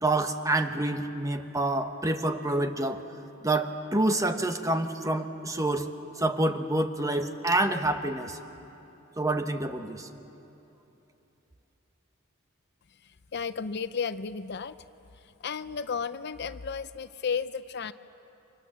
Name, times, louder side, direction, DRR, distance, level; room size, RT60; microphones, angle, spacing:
voice 1, 0.0-3.0 3.4-5.9 6.2-8.4 9.2-10.1, right 2 dB, 15° right, 7 dB, 1.2 m, -27 dB
voice 2, 12.9-14.9 15.1-17.9, left 6 dB, 55° left, 13 dB, 0.6 m, -34 dB
30.0 x 25.5 x 7.5 m, 3.0 s
head